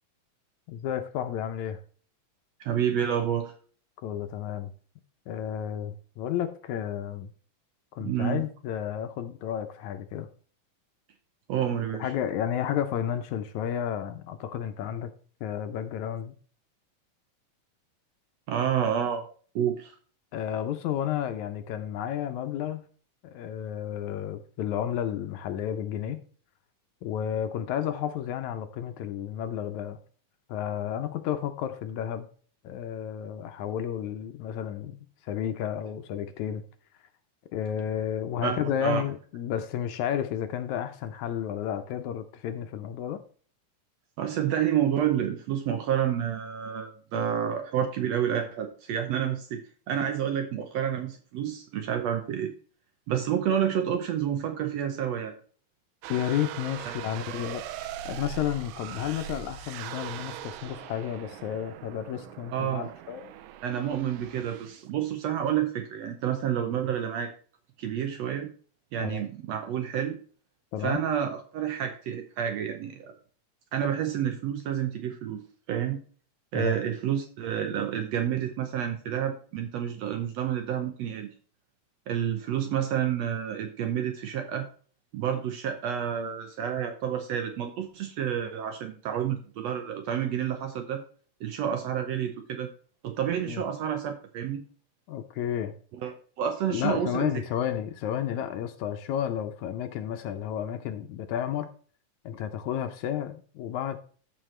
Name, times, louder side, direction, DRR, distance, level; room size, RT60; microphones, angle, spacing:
voice 1, 0.7-1.8 4.0-4.7 5.3-7.3 7.9-10.3 12.0-15.1 15.4-16.3 20.3-22.9 23.2-26.3 27.0-30.0 30.5-32.3 32.6-35.0 35.2-36.6 37.5-43.2 56.1-63.2 69.0-69.2 70.7-71.1 76.6-76.9 93.5-93.6 95.1-95.7 96.7-101.7 102.3-104.0, left 10 dB, 75° left, 8 dB, 1.9 m, -32 dB
voice 2, 2.6-3.5 8.0-8.4 11.5-12.1 18.5-19.2 19.6-20.0 38.4-39.0 44.2-49.6 49.9-52.5 53.1-55.3 56.9-57.0 62.5-62.9 63.6-67.3 67.8-68.5 68.9-70.2 70.8-73.1 73.7-75.4 75.7-76.0 76.5-81.3 82.1-84.7 85.1-91.0 91.4-92.7 93.0-94.6 96.0-97.3, right 9 dB, 70° right, 6 dB, 1.7 m, -29 dB
sound 1, 56.0-64.9, right 12 dB, 90° right, 2.3 m, -41 dB
14.0 x 4.7 x 3.2 m, 0.43 s
omnidirectional pair, 3.7 m